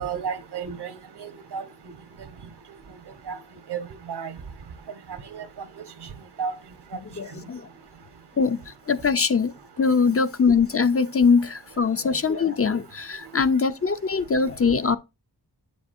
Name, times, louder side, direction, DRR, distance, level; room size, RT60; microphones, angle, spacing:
voice 1, 0.0-1.6 3.3-3.4 3.7-3.8 4.1-4.3 5.3-5.4 6.4-6.5, right 6 dB, 75° right, 1.3 m, -31 dB
voice 2, 6.9-7.7 8.4-15.0, left 5 dB, 35° left, 0.6 m, -22 dB
8.2 x 7.0 x 2.6 m
wide cardioid pair, 160°, 40 cm